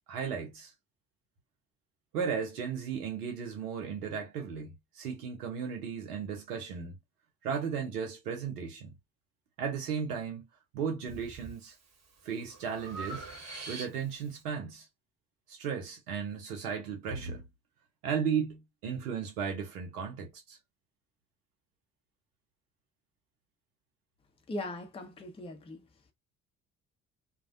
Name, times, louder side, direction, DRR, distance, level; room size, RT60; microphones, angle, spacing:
voice 1, 0.1-0.7 2.1-6.9 7.4-8.9 9.6-10.5 10.7-11.7 12.2-13.2 13.7-14.9 15.5-17.4 18.0-20.6, right 6 dB, 80° right, 0.8 m, -35 dB
Breathing, 11.1-11.6 12.0-14.3, right 3 dB, 35° right, 1.0 m, -44 dB
voice 2, 24.5-25.9, left 1 dB, 15° left, 0.6 m, -39 dB
2.3 x 2.1 x 2.5 m
figure-of-eight pair, 45°, 45 cm